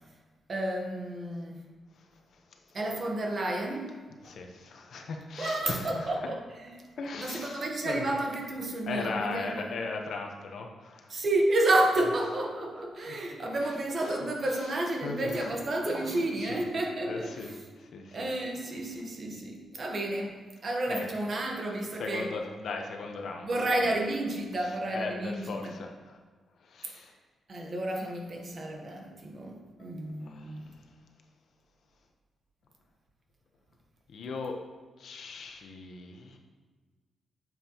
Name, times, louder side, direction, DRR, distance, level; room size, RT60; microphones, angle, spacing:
voice 1, 0.5-1.6 2.7-4.0 5.4-6.7 7.2-9.6 11.1-17.6 18.1-22.3 23.4-25.7 27.5-30.7, right 1 dB, 40° right, 1 dB, 1.1 m, -31 dB
voice 2, 2.0-2.6 4.2-6.1 7.0-8.0 8.9-11.1 13.1-13.2 13.6-13.7 14.0-14.2 14.5-15.5 15.8-16.6 17.1-17.5 17.8-18.3 20.9-21.1 21.9-23.5 24.6-26.2 26.6-27.1 29.8-29.9 30.2-30.8 34.1-34.5 35.0-36.4, left 3 dB, 60° left, 2 dB, 1.0 m, -38 dB
9.3 x 7.3 x 3.0 m, 1.4 s
wide cardioid pair, 150°, 0 cm